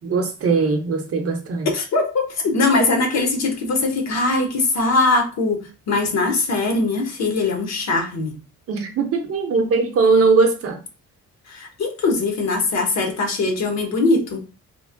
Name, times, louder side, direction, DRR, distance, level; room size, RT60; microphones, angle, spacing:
voice 1, 0.0-1.7 8.7-10.8, right 4 dB, 50° right, 0.6 m, -20 dB
voice 2, 1.7-5.6 5.9-8.4 11.5-14.4, left 3 dB, 60° left, 0.9 m, -21 dB
2.9 x 2.0 x 2.5 m
cardioid pair, 90°, 30 cm